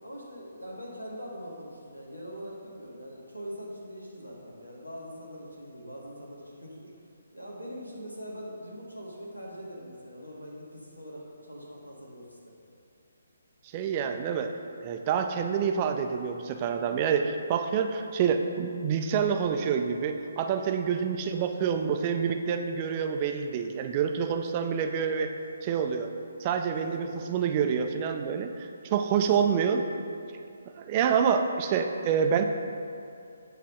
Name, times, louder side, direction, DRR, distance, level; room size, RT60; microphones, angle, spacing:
voice 1, 0.0-6.9 7.3-12.5 25.4-25.6 26.7-27.2 29.2-29.3, equal, 90° left, -3 dB, 1.7 m, -42 dB
voice 2, 13.7-14.5 14.8-25.3 25.6-26.1 26.4-29.9 30.8-32.4, right 7 dB, 25° right, 5 dB, 0.4 m, -27 dB
8.4 x 3.4 x 5.9 m, 2.5 s
figure-of-eight pair, 140°, 0 cm